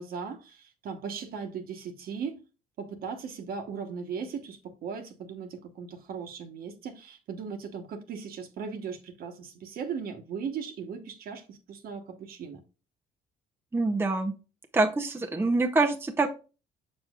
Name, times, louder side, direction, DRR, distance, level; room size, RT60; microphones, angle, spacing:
voice 1, 0.0-2.4 2.8-12.6, right 6 dB, 60° right, 1.2 m, -38 dB
voice 2, 13.7-14.3 14.7-16.3, right 3 dB, 15° right, 0.7 m, -25 dB
6.4 x 6.2 x 2.4 m
cardioid pair, 110°, 17 cm